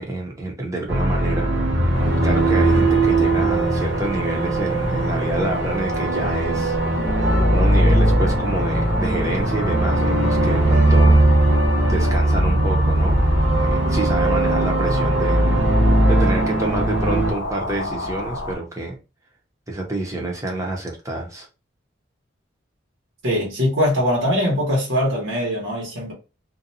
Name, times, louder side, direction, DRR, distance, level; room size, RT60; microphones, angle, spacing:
voice 1, 0.0-1.5 1.7-1.8 2.2-6.8 7.5-11.2 11.9-13.3 13.5-15.4 16.1-19.0 19.7-21.5, right 2 dB, 15° right, 0.6 m, -28 dB
sound 1, 0.9-17.3, right 1 dB, 65° right, 0.8 m, -19 dB
sound 2, 1.9-18.6, left 1 dB, 75° left, 0.6 m, -30 dB
voice 2, 23.2-26.1, equal, 80° right, 1.2 m, -21 dB
2.6 x 2.2 x 2.7 m
head